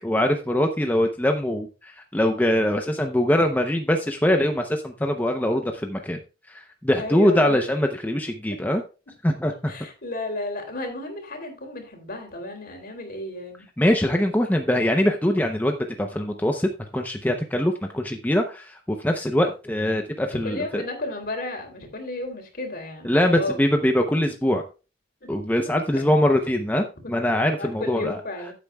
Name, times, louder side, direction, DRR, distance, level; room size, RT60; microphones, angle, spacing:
voice 1, 0.0-6.2 6.5-8.8 9.2-9.7 13.8-20.8 23.0-24.6 25.3-28.2, left 1 dB, 10° left, 0.7 m, -23 dB
voice 2, 7.0-7.7 9.7-13.6 20.4-23.6 25.2-25.3 26.0-26.1 27.0-28.5, left 2 dB, 55° left, 3.1 m, -33 dB
14.5 x 8.2 x 2.3 m
head